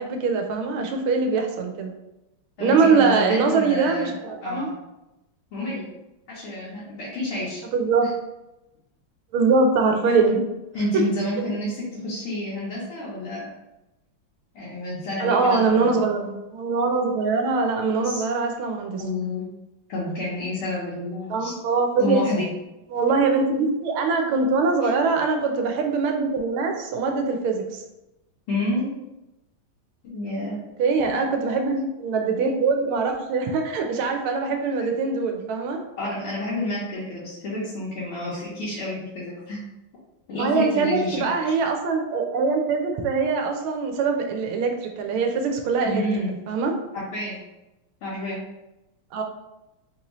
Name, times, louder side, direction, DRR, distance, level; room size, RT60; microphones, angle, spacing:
voice 1, 0.0-1.9 2.6-4.7 7.7-8.1 9.3-10.4 10.9-11.0 15.2-19.0 21.3-22.2 22.9-27.8 30.8-35.8 40.4-46.0 46.3-46.7 49.1-49.2, right 4 dB, 80° right, 4 dB, 1.4 m, -23 dB
voice 2, 2.6-4.1 4.4-4.7 5.5-5.8 6.3-7.6 8.0-8.1 10.2-10.4 10.7-13.5 14.5-15.9 18.0-18.3 19.0-19.4 19.9-21.6 22.0-22.5 24.8-24.9 28.5-28.9 30.0-30.6 31.0-31.2 34.8-34.9 36.0-39.6 40.3-41.2 45.8-46.3 46.9-47.4 48.0-48.4, left 1 dB, 90° left, -9 dB, 1.9 m, -29 dB
4.1 x 2.6 x 3.0 m, 0.95 s
omnidirectional pair, 2.4 m